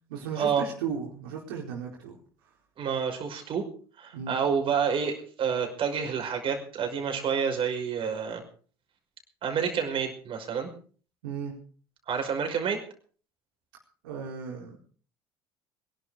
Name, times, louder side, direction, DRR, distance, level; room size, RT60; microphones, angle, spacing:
voice 1, 0.1-2.2 4.1-4.3 11.2-11.6 14.0-14.8, right 6 dB, 70° right, -2 dB, 4.5 m, -35 dB
voice 2, 2.8-3.7 4.0-8.4 9.4-10.7 12.1-12.8, right 6 dB, 45° right, 4 dB, 5.6 m, -28 dB
23.5 x 11.5 x 5.1 m, 0.43 s
figure-of-eight pair, 65°, 13 cm